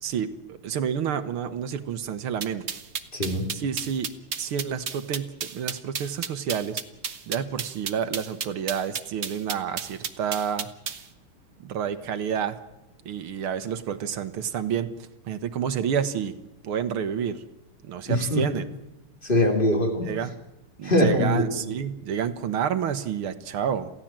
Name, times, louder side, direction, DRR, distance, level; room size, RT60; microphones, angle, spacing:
voice 1, 0.0-2.6 3.5-4.1 4.4-6.8 7.3-10.7 11.6-12.6 13.1-16.3 16.6-17.4 17.8-18.7 20.0-20.3 20.8-23.9, right 8 dB, 80° right, 10 dB, 2.0 m, -29 dB
sound 1, 2.4-11.0, right 6 dB, 40° right, 1.1 m, -32 dB
voice 2, 3.1-3.4 18.1-18.4 19.2-20.1 20.8-21.6, left 1 dB, 25° left, 2 dB, 3.5 m, -22 dB
28.0 x 16.0 x 7.5 m, 1.0 s
omnidirectional pair, 2.4 m